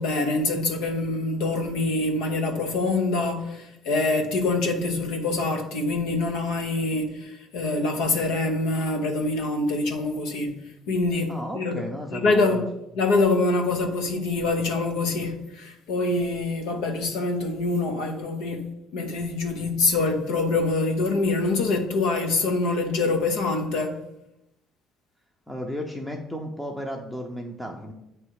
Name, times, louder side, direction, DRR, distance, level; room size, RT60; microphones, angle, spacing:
voice 1, 0.0-10.6 10.9-11.7 12.1-12.7 12.9-24.0, left 3 dB, 90° left, 0.9 m, -25 dB
voice 2, 11.3-12.7 25.5-27.9, equal, 5° left, 0.6 m, -34 dB
7.5 x 3.2 x 4.7 m
cardioid pair, 115°, 0 cm